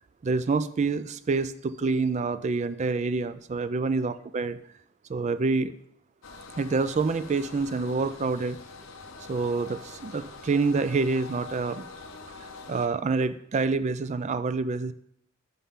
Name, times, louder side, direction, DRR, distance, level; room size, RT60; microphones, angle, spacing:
voice 1, 0.2-4.6 5.1-5.7 6.5-8.6 9.3-11.8 12.4-14.9, right 4 dB, 30° right, 13 dB, 0.3 m, -27 dB
sound 1, 6.2-12.9, left 4 dB, 60° left, 0.9 m, -44 dB
11.5 x 5.5 x 3.7 m, 0.69 s
head